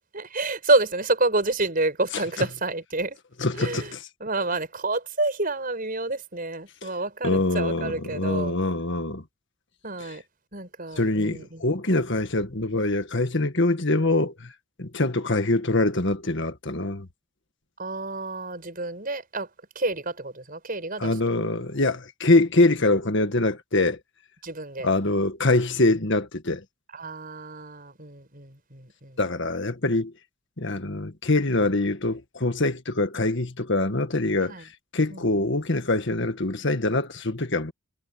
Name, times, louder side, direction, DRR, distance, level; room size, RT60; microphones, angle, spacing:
voice 1, 0.1-3.2 3.6-3.9 4.2-8.5 9.8-10.2 10.5-11.6 17.8-19.5 19.7-21.1 21.4-21.6 24.4-24.9 26.9-29.2 34.5-34.6 35.1-35.2, right 2 dB, 40° right, 6.6 m, -28 dB
voice 2, 2.1-2.5 3.4-4.1 6.8-6.9 7.2-9.2 10.0-10.2 11.0-14.5 14.8-17.1 21.0-24.0 24.8-26.6 29.2-30.1 30.6-37.7, left 2 dB, 55° left, 1.7 m, -24 dB
head